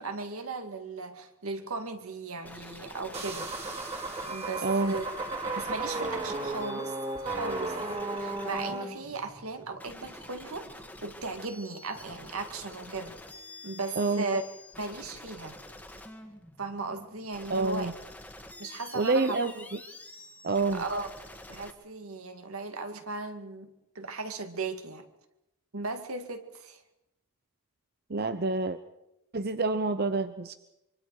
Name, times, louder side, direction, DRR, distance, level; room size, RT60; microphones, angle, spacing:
voice 1, 0.0-3.5 4.2-5.0 5.6-7.8 8.1-13.2 13.6-14.4 14.8-15.6 16.6-17.9 18.6-19.4 20.7-21.1 21.5-25.1 25.7-26.8, right 3 dB, 80° right, 6 dB, 2.1 m, -37 dB
sound 1, 2.4-21.7, left 1 dB, 5° left, 1.6 m, -47 dB
sound 2, 3.1-8.8, right 2 dB, 30° right, 2.4 m, -34 dB
voice 2, 4.6-4.9 14.0-14.3 17.5-17.9 18.9-19.5 20.4-20.8 28.1-28.8 29.3-30.5, right 3 dB, 45° right, 10 dB, 0.7 m, -27 dB
25.0 x 24.5 x 4.8 m, 0.88 s
head